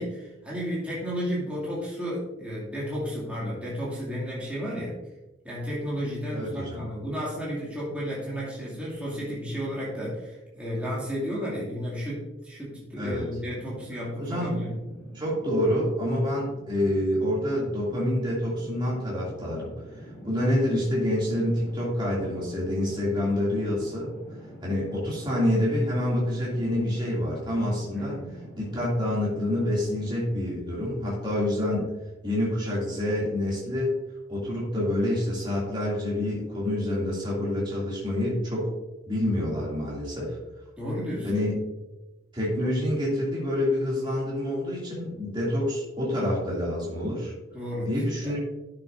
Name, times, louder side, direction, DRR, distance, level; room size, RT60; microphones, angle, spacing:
voice 1, 0.0-4.9 5.4-14.7 27.9-28.3 40.8-41.4 47.5-47.9 48.2-48.4, equal, 5° right, -7 dB, 2.3 m, -33 dB
voice 2, 6.3-6.8 13.0-13.2 14.2-14.6 15.1-19.7 20.2-24.1 24.6-28.2 28.6-31.9 32.2-34.0 34.3-38.7 39.1-40.4 41.2-41.5 42.3-47.3 47.8-48.4, left 1 dB, 25° right, -5 dB, 2.6 m, -27 dB
sound 1, 13.4-30.1, equal, 15° left, 2.8 m, -45 dB
11.0 x 6.7 x 2.6 m, 1.0 s
head